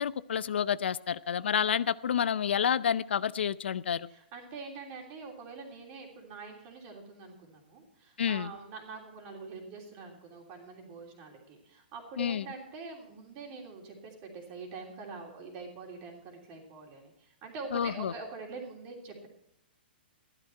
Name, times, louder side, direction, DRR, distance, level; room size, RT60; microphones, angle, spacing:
voice 1, 0.0-4.1 8.2-8.5 12.2-12.4 17.7-18.1, left 8 dB, 90° left, 0.5 m, -29 dB
voice 2, 4.1-19.3, right 4 dB, 25° right, 3.0 m, -45 dB
13.5 x 11.5 x 4.4 m
hypercardioid pair, 170°, 6 cm